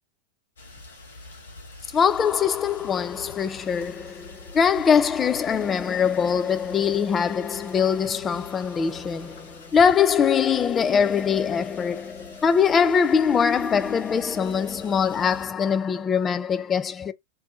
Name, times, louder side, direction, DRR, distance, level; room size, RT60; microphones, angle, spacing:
sound 1, 0.6-15.5, left 2 dB, 70° left, 1.0 m, -45 dB
voice 1, 1.9-17.1, left 7 dB, 20° left, 0.3 m, -22 dB
2.6 x 2.2 x 2.2 m
figure-of-eight pair, 90°, 0 cm